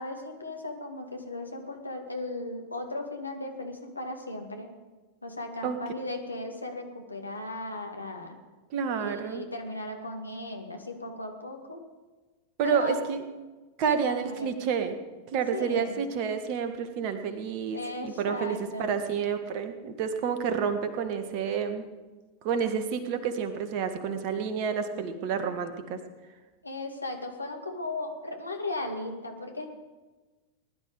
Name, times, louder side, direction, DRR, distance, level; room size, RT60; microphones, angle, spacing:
voice 1, 0.0-4.7 5.2-8.4 9.0-11.8 12.6-13.0 13.9-14.6 15.5-15.9 17.7-19.0 26.6-29.7, left 2 dB, 80° left, 3 dB, 2.1 m, -36 dB
voice 2, 8.7-9.5 12.6-13.2 13.8-15.0 15.3-21.8 22.4-26.0, right 6 dB, 45° right, 8 dB, 1.7 m, -29 dB
20.0 x 11.5 x 4.9 m, 1.2 s
figure-of-eight pair, 90°, 0 cm